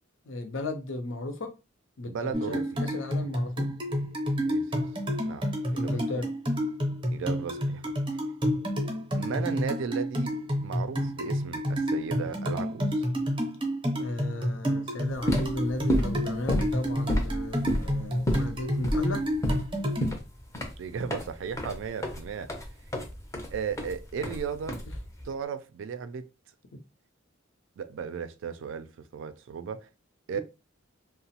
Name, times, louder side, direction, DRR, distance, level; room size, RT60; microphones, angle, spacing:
voice 1, 0.3-1.5 2.0-3.7 5.7-6.3 13.9-19.3 30.3-30.4, left 2 dB, 65° left, 0.5 m, -35 dB
voice 2, 2.1-2.6 4.5-4.6 5.2-6.0 7.1-7.8 9.2-10.3 10.6-13.0 20.8-22.5 23.5-24.8 25.2-26.2 27.8-29.9 30.3-30.4, right 6 dB, 65° right, 0.3 m, -35 dB
sound 1, 2.3-20.1, equal, 25° right, 0.6 m, -30 dB
sound 2, 15.1-25.3, equal, 15° left, 0.5 m, -31 dB
2.9 x 2.0 x 2.8 m
head